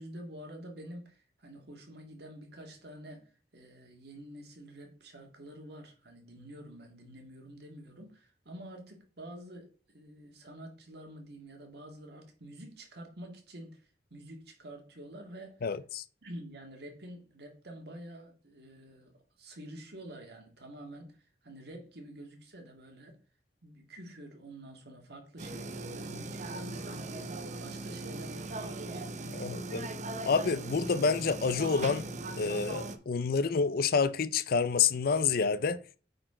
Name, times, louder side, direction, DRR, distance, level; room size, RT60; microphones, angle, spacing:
voice 1, 0.0-13.8 14.1-15.6 16.2-23.2 23.6-30.0, right 1 dB, 65° right, 2.1 m, -48 dB
voice 2, 15.6-16.0 29.3-29.9 30.2-32.1 32.4-35.8, left 5 dB, 55° left, 0.5 m, -28 dB
sound 1, 25.4-33.0, right 2 dB, 45° right, 0.8 m, -39 dB
8.9 x 4.2 x 4.3 m
head